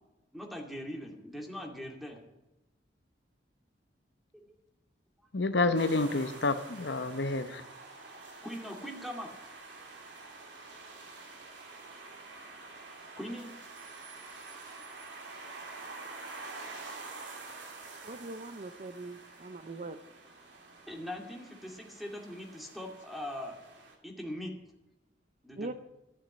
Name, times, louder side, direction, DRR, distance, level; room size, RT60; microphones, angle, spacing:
voice 1, 0.3-2.2 4.3-4.5 8.4-9.3 13.2-13.5 20.9-23.6 24.0-24.6 25.4-25.7, equal, ahead, 2.3 m, -41 dB
voice 2, 5.3-7.6, left 3 dB, 70° left, 0.9 m, -29 dB
sound 1, 5.7-23.9, right 3 dB, 80° right, 3.0 m, -48 dB
voice 3, 18.0-20.0 25.6-25.7, right 2 dB, 45° right, 0.6 m, -41 dB
14.0 x 7.3 x 8.9 m
head